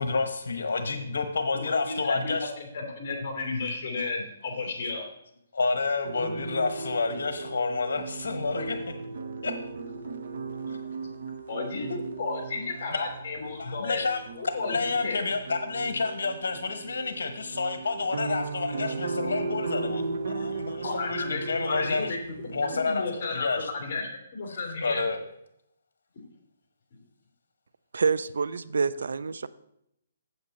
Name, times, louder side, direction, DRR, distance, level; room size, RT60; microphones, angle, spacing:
voice 1, 0.0-2.5 5.5-8.8 9.4-9.5 10.7-10.8 12.9-13.1 13.6-22.2 22.5-23.7 24.5-25.2, left 4 dB, 85° left, 8 dB, 1.0 m, -29 dB
voice 2, 1.5-5.1 11.5-14.0 14.4-15.2 20.8-22.2 22.7-25.0, left 3 dB, 40° left, 2 dB, 3.1 m, -33 dB
sound 1, 6.0-22.8, right 3 dB, 60° right, 0.8 m, -36 dB
voice 3, 27.9-29.5, right 5 dB, 80° right, 16 dB, 0.5 m, -27 dB
8.6 x 7.8 x 4.2 m, 0.77 s
hypercardioid pair, 160°, 0 cm